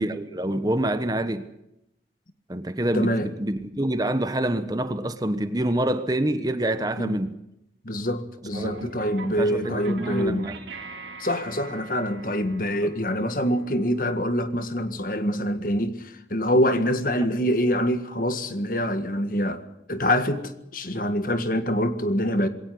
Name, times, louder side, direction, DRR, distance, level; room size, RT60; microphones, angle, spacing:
voice 1, 0.0-1.5 2.5-7.4 8.5-8.7 9.2-10.6 12.8-12.9, right 1 dB, 20° right, 1.2 m, -26 dB
voice 2, 2.9-3.3 7.0-7.2 7.9-10.5 11.2-19.6 19.9-22.5, equal, 50° left, 1.8 m, -25 dB
sound 1, 8.5-15.2, right 3 dB, 90° right, 2.9 m, -42 dB
21.5 x 18.0 x 7.8 m
head